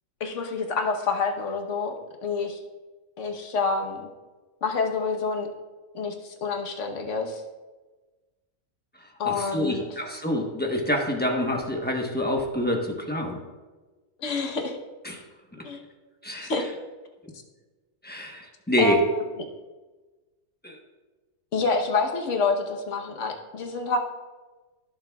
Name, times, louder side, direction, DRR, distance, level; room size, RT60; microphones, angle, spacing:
voice 1, 0.2-1.9 2.2-2.6 3.2-4.1 4.6-5.5 5.9-7.4 9.2-9.8 14.2-14.8 15.6-15.8 16.4-16.7 18.8-19.2 21.5-24.0, left 4 dB, 55° left, 3 dB, 1.3 m, -27 dB
voice 2, 9.2-13.4 15.0-15.2 16.2-16.5 18.0-19.0 20.6-20.8, left 1 dB, 10° left, 1 dB, 0.9 m, -27 dB
15.5 x 6.9 x 2.3 m, 1.3 s
omnidirectional pair, 1.6 m